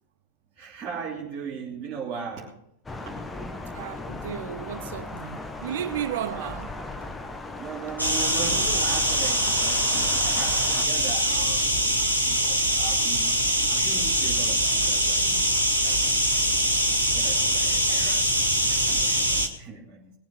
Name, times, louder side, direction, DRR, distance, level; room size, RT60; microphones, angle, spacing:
voice 1, 0.6-2.6 3.0-3.1 6.3-6.6 7.5-12.0 12.4-13.4 13.7-15.5 15.8-16.5 17.0-20.1, right 5 dB, 25° right, 3.1 m, -38 dB
Thunder, 2.9-10.9, left 2 dB, 10° left, 1.5 m, -37 dB
voice 2, 3.7-6.7 16.4-16.5, right 10 dB, 60° right, 0.7 m, -33 dB
sound 1, 8.0-19.5, right 1 dB, 85° right, 2.3 m, -23 dB
20.0 x 7.2 x 8.3 m
figure-of-eight pair, 90°, 0 cm